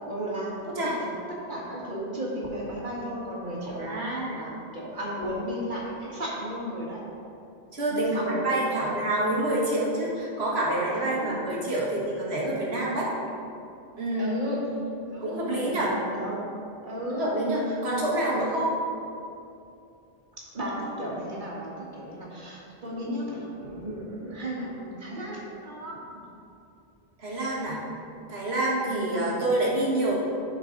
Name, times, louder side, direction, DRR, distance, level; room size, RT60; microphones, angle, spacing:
voice 1, 0.1-0.9 1.3-7.0 7.9-8.9 14.2-14.6 15.1-16.4 16.8-17.3 20.4-26.2 28.8-29.2, equal, 50° right, -5 dB, 1.9 m, -35 dB
voice 2, 3.8-4.4 7.7-13.1 14.0-14.4 14.8-14.9 15.2-15.9 17.1-18.7 27.2-27.8 28.3-30.2, right 1 dB, 75° right, -5 dB, 1.9 m, -27 dB
12.0 x 4.6 x 3.9 m, 2.6 s
omnidirectional pair, 1.1 m